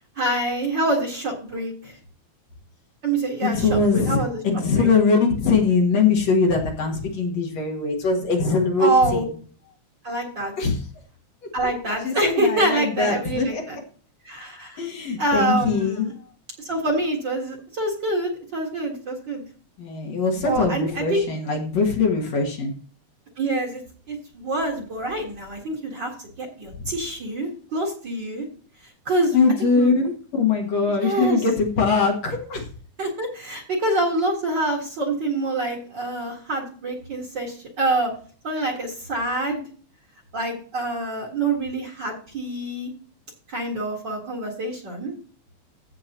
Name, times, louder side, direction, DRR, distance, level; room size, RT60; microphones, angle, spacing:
voice 1, 0.2-2.0 3.0-4.9 8.8-9.2 10.0-10.5 11.5-13.8 14.2-14.8 15.2-16.1 16.6-19.4 20.4-21.2 23.4-23.8 24.1-28.5 29.1-29.9 31.0-31.4 33.0-38.1 38.4-39.6 40.3-42.9 43.5-45.1, right 2 dB, 40° right, -1 dB, 2.2 m, -26 dB
voice 2, 3.4-4.2 4.4-9.2 10.6-10.7 12.0-13.6 14.8-16.1 19.8-22.7 26.8-26.9 29.3-32.6, left 4 dB, 60° left, 0 dB, 2.8 m, -22 dB
15.5 x 6.7 x 3.0 m, 0.42 s
omnidirectional pair, 3.4 m